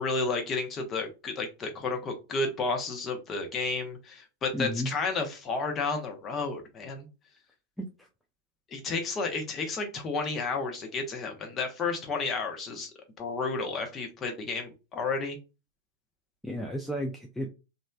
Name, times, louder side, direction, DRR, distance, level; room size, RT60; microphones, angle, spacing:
voice 1, 0.0-7.1 8.7-12.9 13.2-15.4, left 3 dB, 25° left, 3 dB, 0.8 m, -32 dB
voice 2, 4.5-4.9 7.8-8.1 16.4-17.5, equal, 5° left, 1 dB, 0.4 m, -33 dB
3.1 x 2.5 x 2.3 m, 0.29 s
figure-of-eight pair, 90°, 0 cm